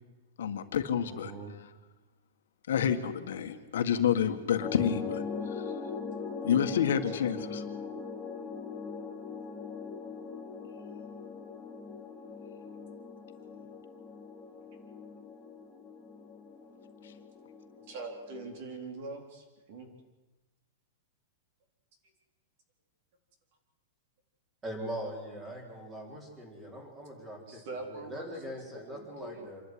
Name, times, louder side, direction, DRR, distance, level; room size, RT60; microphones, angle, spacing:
voice 1, 0.4-1.3 2.7-5.2 5.6-5.7 6.4-7.6, left 8 dB, 80° left, 6 dB, 1.8 m, -28 dB
voice 2, 1.0-1.5 17.9-19.9 27.5-29.5, right 3 dB, 45° right, 4 dB, 4.0 m, -43 dB
sound 1, 4.6-18.6, left 5 dB, 5° left, 3.1 m, -41 dB
voice 3, 24.6-27.6 27.9-29.6, equal, 15° right, 2 dB, 4.2 m, -41 dB
27.0 x 11.5 x 9.6 m, 1.1 s
supercardioid pair, 170°, 0 cm